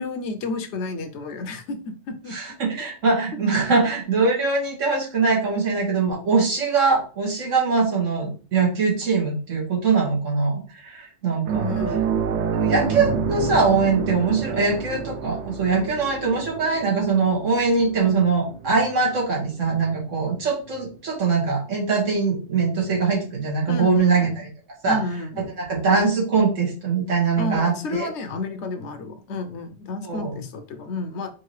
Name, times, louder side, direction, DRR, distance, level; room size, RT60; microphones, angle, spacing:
voice 1, 0.0-2.6 11.6-12.4 23.7-24.4 24.8-25.5 27.4-31.3, left 3 dB, 70° left, 8 dB, 0.9 m, -31 dB
voice 2, 2.3-11.7 12.6-24.5 24.8-25.0 25.6-28.1 30.0-30.3, right 4 dB, 90° right, -3 dB, 1.9 m, -22 dB
sound 1, 11.5-20.4 20.7-20.9 23.0-23.1, right 6 dB, 70° right, 0.8 m, -28 dB
4.7 x 2.7 x 3.1 m, 0.38 s
omnidirectional pair, 1.3 m